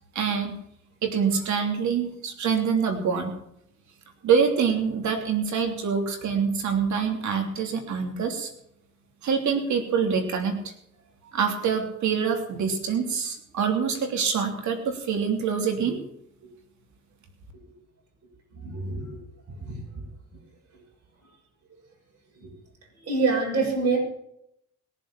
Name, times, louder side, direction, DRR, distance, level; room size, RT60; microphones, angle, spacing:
voice 1, 0.1-0.6 1.0-3.3 4.2-8.5 9.2-10.7 11.3-16.0, right 6 dB, 70° right, 4 dB, 3.1 m, -25 dB
voice 2, 18.6-19.1 19.6-20.0 22.4-22.5 23.0-24.0, right 4 dB, 55° right, -2 dB, 6.4 m, -26 dB
21.0 x 7.5 x 7.5 m, 0.76 s
cardioid pair, 90°, 30 cm